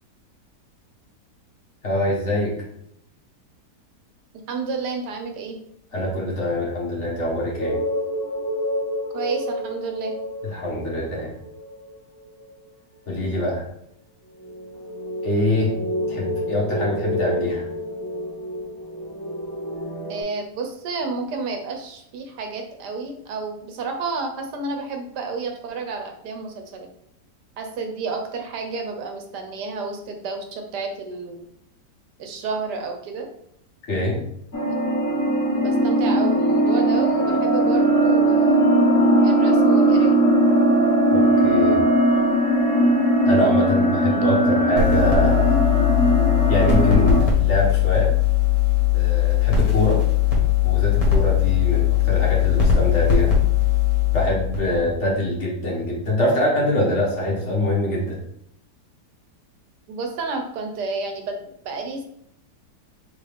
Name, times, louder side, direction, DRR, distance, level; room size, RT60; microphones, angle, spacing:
voice 1, 1.8-2.5 5.9-7.7 10.5-11.3 13.1-13.6 15.2-15.7 16.1-17.7 33.9-34.2 41.1-41.8 43.2-45.6 46.5-48.1 48.9-50.0 50.6-53.3 54.1-58.2, left 1 dB, 45° left, -4 dB, 1.5 m, -24 dB
voice 2, 4.5-5.6 9.1-10.1 20.1-26.9 27.6-31.5 32.2-33.3 35.5-38.8 39.2-40.2 59.9-62.0, right 4 dB, 80° right, 4 dB, 1.3 m, -30 dB
sound 1, 7.6-12.7 14.4-20.2, equal, 30° right, 1.3 m, -29 dB
sound 2, 34.5-47.2, right 1 dB, 15° left, 0.8 m, -19 dB
sound 3, 44.8-55.0, left 10 dB, 65° left, 1.7 m, -19 dB
4.0 x 3.6 x 3.4 m, 0.73 s
omnidirectional pair, 1.8 m